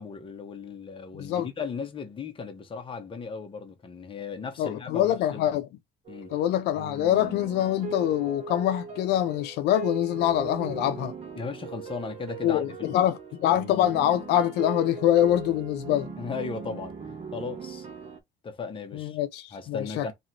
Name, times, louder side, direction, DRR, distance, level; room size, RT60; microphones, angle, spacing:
voice 1, 0.0-5.6 6.1-6.3 11.3-13.0 16.2-17.9 18.4-19.2 19.5-20.1, left 5 dB, 30° left, 1.1 m, -37 dB
voice 2, 1.1-1.5 4.6-5.7 6.3-11.1 12.4-16.1 18.9-20.1, left 12 dB, 85° left, 0.6 m, -25 dB
sound 1, 6.0-18.2, right 5 dB, 40° right, 1.3 m, -39 dB
3.0 x 3.0 x 4.2 m
cardioid pair, 110°, 17 cm